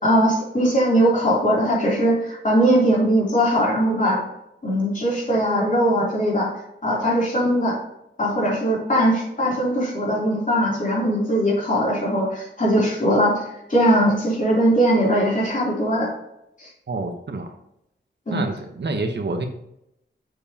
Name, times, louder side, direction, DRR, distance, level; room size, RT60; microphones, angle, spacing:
voice 1, 0.0-4.2 4.6-6.5 6.8-7.8 8.2-16.1 16.6-16.7 18.3-18.4, equal, 40° left, -4 dB, 3.1 m, -20 dB
voice 2, 16.9-17.5 18.3-19.5, right 3 dB, 60° right, 5 dB, 1.0 m, -27 dB
7.8 x 6.9 x 2.8 m, 0.81 s
wide cardioid pair, 85°, 20 cm